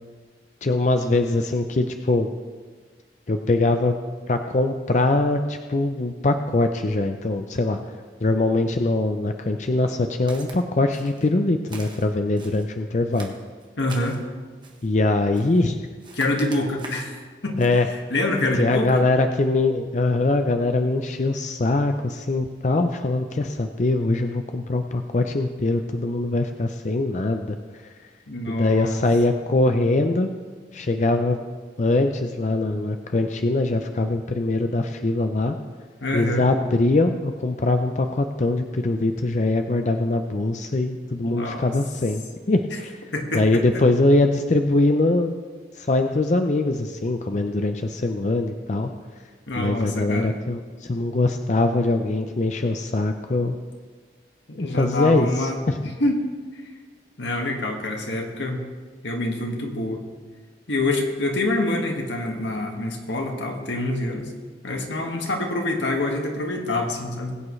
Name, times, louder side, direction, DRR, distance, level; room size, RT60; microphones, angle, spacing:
voice 1, 0.6-2.3 3.3-4.0 4.3-7.8 8.2-13.3 14.8-15.8 17.6-17.9 18.6-27.6 28.5-30.3 30.7-31.4 31.8-35.6 36.1-43.0 43.3-45.3 45.8-48.9 49.6-50.6 50.9-53.6 54.6-55.8, left 2 dB, 40° left, 6 dB, 0.5 m, -22 dB
Walk footsteps, 10.3-10.6 10.9-11.3 11.7-12.7 13.1-14.2 14.6-14.9 15.3-15.7 16.0-17.1 17.6-17.8, right 3 dB, 25° right, 1.2 m, -43 dB
voice 2, 13.8-14.2 16.1-17.6 18.1-19.0 28.3-29.0 36.0-36.4 41.2-41.7 43.1-43.8 49.5-50.3 54.5-55.6 56.0-56.2 57.2-58.7 59.0-60.0 60.7-64.3 64.6-67.4, left 2 dB, 90° left, 1 dB, 1.8 m, -26 dB
20.5 x 8.6 x 3.2 m, 1.5 s
head